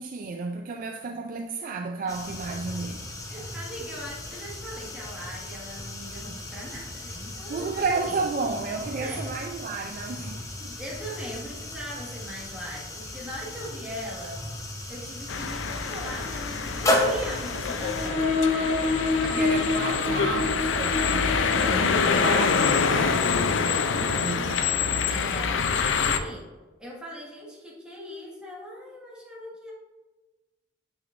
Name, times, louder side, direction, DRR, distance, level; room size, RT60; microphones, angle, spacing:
voice 1, 0.0-3.1 7.5-10.7 19.1-23.5 24.0-24.7, right 4 dB, 45° right, 0.3 m, -32 dB
sound 1, 2.1-18.1, left 1 dB, 15° left, 0.8 m, -34 dB
voice 2, 3.3-8.2 9.0-9.3 10.7-14.4 14.9-18.7 25.1-26.4 26.8-29.7, equal, 5° right, 1.7 m, -40 dB
sound 2, 15.3-26.2, left 5 dB, 85° left, 0.5 m, -26 dB
sound 3, 17.8-25.1, left 3 dB, 40° left, 1.6 m, -29 dB
7.7 x 6.2 x 2.5 m
head